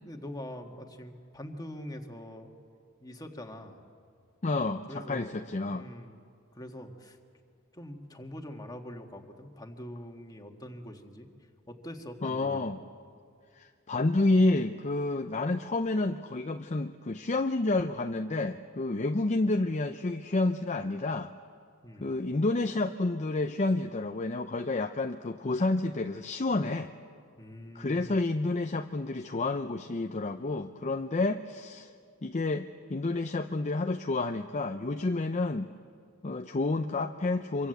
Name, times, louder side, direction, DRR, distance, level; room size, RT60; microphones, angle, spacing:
voice 1, 0.1-2.6 3.0-3.8 4.9-5.4 5.7-6.2 6.5-7.2 7.7-11.3 11.7-12.7 21.8-22.1 27.4-28.1, left 1 dB, 20° left, 3 dB, 1.8 m, -43 dB
voice 2, 4.4-5.9 12.2-12.8 13.6-21.3 22.0-26.9 27.7-31.9 32.2-35.7 36.2-37.7, left 2 dB, 35° left, 7 dB, 0.6 m, -29 dB
25.5 x 24.0 x 8.0 m, 2.2 s
head